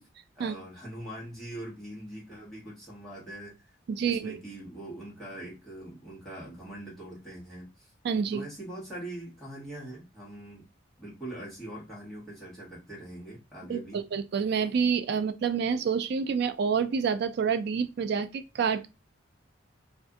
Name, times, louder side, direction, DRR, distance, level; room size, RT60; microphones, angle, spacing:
voice 1, 0.3-7.9 8.3-10.6 11.0-14.0, right 1 dB, ahead, 1.3 m, -42 dB
voice 2, 3.9-4.4 8.0-8.4 13.7-18.9, right 6 dB, 55° right, 0.3 m, -28 dB
2.6 x 2.4 x 3.5 m
head